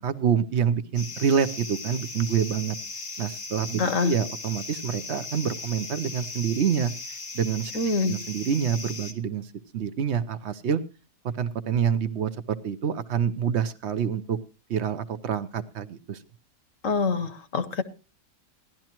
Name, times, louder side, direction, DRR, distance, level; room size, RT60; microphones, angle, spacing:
voice 1, 0.0-2.7 3.2-6.9 7.3-10.8 11.4-14.4 14.7-16.2, right 7 dB, 50° right, 0.9 m, -27 dB
sound 1, 1.0-9.1, left 3 dB, 85° left, 2.4 m, -38 dB
voice 2, 3.8-4.2 7.7-8.1 16.8-17.8, left 4 dB, 55° left, 1.2 m, -25 dB
17.5 x 12.0 x 3.0 m
omnidirectional pair, 1.8 m